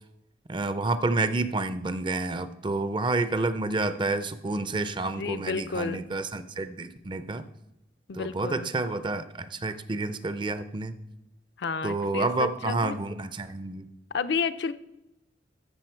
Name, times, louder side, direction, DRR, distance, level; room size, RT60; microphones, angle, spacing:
voice 1, 0.5-7.5 8.1-11.0 11.8-13.9, right 2 dB, 25° right, 12 dB, 0.5 m, -29 dB
voice 2, 5.2-6.0 8.1-8.7 11.6-13.0 14.1-14.7, left 5 dB, 60° left, 11 dB, 0.5 m, -31 dB
13.5 x 6.6 x 4.5 m, 0.91 s
head